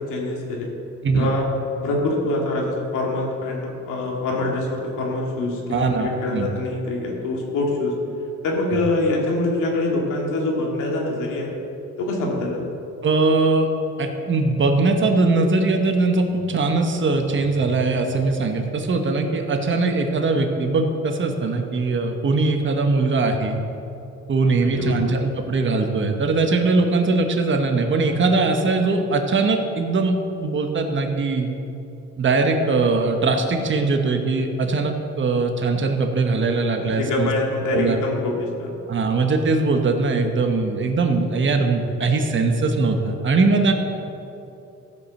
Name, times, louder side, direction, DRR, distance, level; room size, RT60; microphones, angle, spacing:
voice 1, 0.1-0.7 1.1-1.5 1.8-7.9 8.4-11.5 12.0-12.6 24.6-25.1 36.8-38.7, left 2 dB, 90° left, -1 dB, 2.3 m, -25 dB
voice 2, 5.7-6.5 13.0-13.7 14.0-23.6 24.3-31.5 32.2-37.3 37.7-38.0 38.9-43.7, right 3 dB, 40° right, 4 dB, 1.2 m, -21 dB
13.5 x 5.1 x 7.0 m, 2.8 s
cardioid pair, 90°, 30 cm